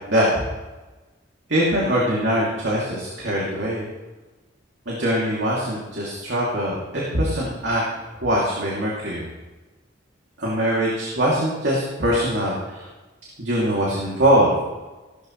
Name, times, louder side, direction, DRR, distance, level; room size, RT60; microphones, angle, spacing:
voice 1, 0.1-0.4 1.5-3.8 4.9-7.8 8.2-9.3 10.4-12.9 13.4-14.5, equal, 70° right, -5 dB, 2.8 m, -22 dB
17.0 x 12.5 x 3.3 m, 1.2 s
head